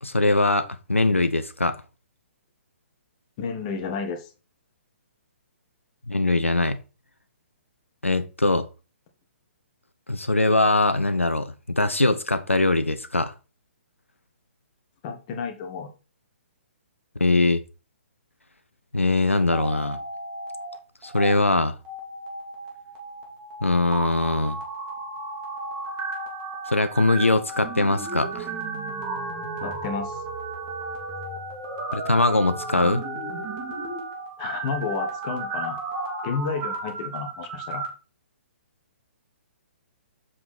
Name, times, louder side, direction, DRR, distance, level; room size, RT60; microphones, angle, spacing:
voice 1, 0.0-1.8 6.1-6.8 8.0-8.7 10.1-13.3 17.2-17.6 18.9-20.0 21.0-21.8 23.6-24.6 26.7-28.5 31.9-33.0, left 2 dB, 80° left, 0.7 m, -22 dB
voice 2, 3.4-4.3 15.0-15.9 29.6-30.2 34.4-35.8 36.2-37.8, left 5 dB, 30° left, 1.6 m, -31 dB
sound 1, 19.4-20.8 21.0-21.3 21.8-37.9, right 3 dB, 20° right, 2.3 m, -34 dB
7.6 x 4.8 x 4.3 m
figure-of-eight pair, 125°, 7 cm